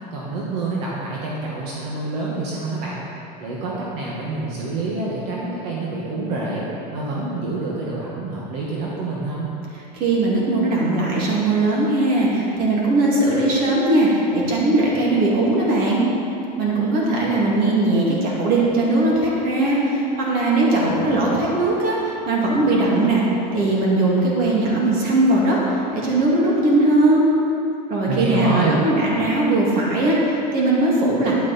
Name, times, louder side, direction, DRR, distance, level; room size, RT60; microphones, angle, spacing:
voice 1, 0.1-3.0 3.4-9.5 28.1-28.8, right 3 dB, 70° right, -5 dB, 1.8 m, -27 dB
voice 2, 9.9-16.1 16.6-23.2 23.5-27.2 27.9-31.3, right 2 dB, 45° right, -4 dB, 2.7 m, -19 dB
10.5 x 9.2 x 4.3 m, 2.8 s
supercardioid pair, 150°, 21 cm